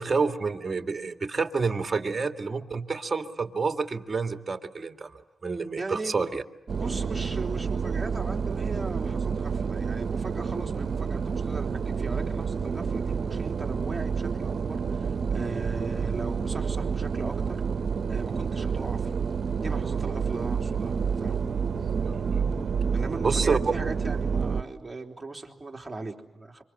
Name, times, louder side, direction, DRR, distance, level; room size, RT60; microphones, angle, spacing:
voice 1, 0.0-6.4 22.0-22.4 23.2-23.6, right 4 dB, 40° right, 7 dB, 1.9 m, -29 dB
voice 2, 5.8-6.2 6.7-17.6 18.1-19.2 19.6-21.4 22.9-26.6, right 3 dB, 25° right, 1 dB, 3.5 m, -38 dB
sound 1, 6.7-24.6, right 6 dB, 65° right, 1.0 m, -29 dB
26.0 x 24.5 x 7.8 m, 0.88 s
cardioid pair, 65°, 0 cm